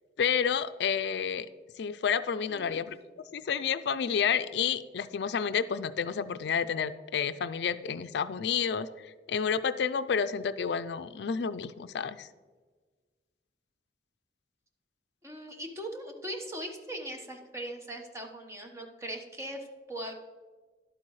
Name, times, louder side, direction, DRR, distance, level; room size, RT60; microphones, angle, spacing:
voice 1, 0.2-1.5 1.8-3.0 3.3-12.3, left 7 dB, 70° left, 12 dB, 0.4 m, -30 dB
voice 2, 2.5-2.8 15.2-20.1, right 1 dB, 15° right, 3 dB, 1.1 m, -40 dB
11.5 x 8.6 x 3.1 m, 1.4 s
head